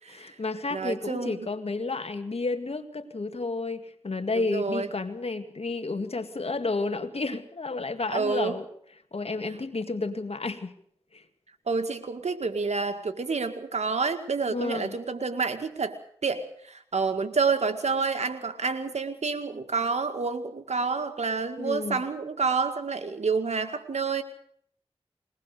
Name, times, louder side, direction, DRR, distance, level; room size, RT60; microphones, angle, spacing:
voice 1, 0.1-8.7 9.1-10.7 11.1-11.2 14.5-14.9 21.6-22.0, left 3 dB, 65° left, 8 dB, 2.2 m, -31 dB
voice 2, 0.7-1.4 4.3-4.9 8.1-8.5 11.7-16.0 16.2-24.2, right 4 dB, 85° right, 7 dB, 2.0 m, -28 dB
22.0 x 19.0 x 6.7 m, 0.63 s
cardioid pair, 45°, 11 cm